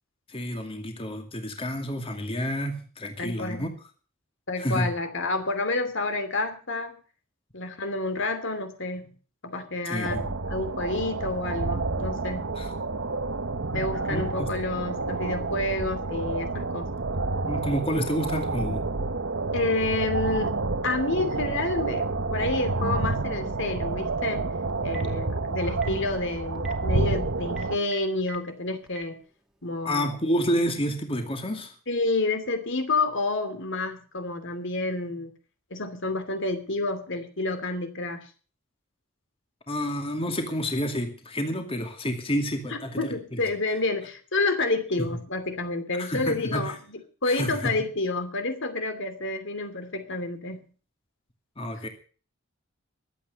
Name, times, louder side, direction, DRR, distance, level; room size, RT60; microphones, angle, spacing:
voice 1, 0.3-3.7 4.6-4.9 9.8-10.2 12.6-12.7 14.1-14.5 17.5-18.9 29.8-31.7 39.7-43.4 46.0-46.8 47.2-47.7 51.6-51.9, equal, 25° left, 4 dB, 2.4 m, -29 dB
voice 2, 3.2-3.7 4.5-7.0 7.5-9.1 9.4-12.5 13.7-16.9 19.5-24.5 24.8-29.2 29.6-30.1 31.9-35.3 35.7-38.2 42.7-50.7, left 2 dB, 60° left, 8 dB, 2.8 m, -29 dB
sound 1, 10.0-27.8, right 3 dB, 65° right, 1.1 m, -29 dB
Telephone, 24.7-25.2 25.7-26.0 26.5-26.7 27.5-28.4 28.9-29.0, right 6 dB, 5° right, 2.2 m, -40 dB
23.0 x 8.8 x 5.4 m, 0.39 s
head